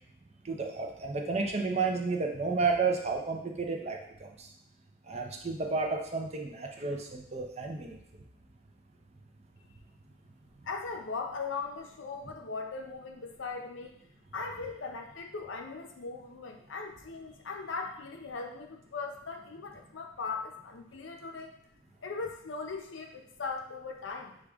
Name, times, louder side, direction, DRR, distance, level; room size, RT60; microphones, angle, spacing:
voice 1, 0.4-4.5 5.1-8.0, right 4 dB, 35° right, 2 dB, 0.5 m, -32 dB
voice 2, 10.6-14.0 14.3-21.6 22.0-24.4, left 4 dB, 75° left, 3 dB, 0.6 m, -39 dB
6.4 x 2.3 x 3.5 m, 0.76 s
head